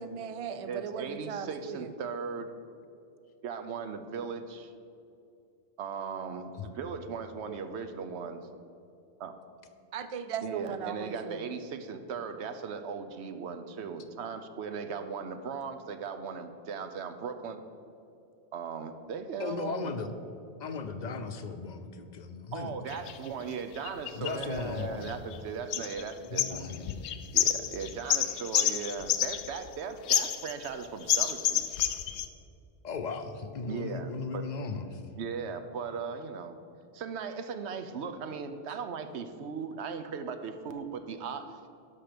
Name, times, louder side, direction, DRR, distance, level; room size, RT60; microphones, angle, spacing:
voice 1, 0.0-1.9 9.9-11.5, right 7 dB, 50° right, 11 dB, 0.4 m, -38 dB
voice 2, 0.7-2.5 3.4-4.7 5.8-8.5 9.2-9.3 10.4-17.6 18.5-19.9 22.5-26.4 27.3-32.0 33.7-34.4 35.2-36.6 36.9-41.7, right 5 dB, 85° right, 9 dB, 1.0 m, -38 dB
voice 3, 19.4-20.1 20.6-22.8 24.1-25.2 26.2-27.0 27.6-27.7 32.8-35.0, left 4 dB, 50° left, 8 dB, 0.7 m, -37 dB
sound 1, 22.9-23.2 23.9-25.4 25.7-26.1 26.4-29.7 30.1-30.7 31.1-32.3, left 10 dB, 80° left, 0.9 m, -29 dB
12.0 x 6.0 x 5.1 m, 2.6 s
omnidirectional pair, 1.1 m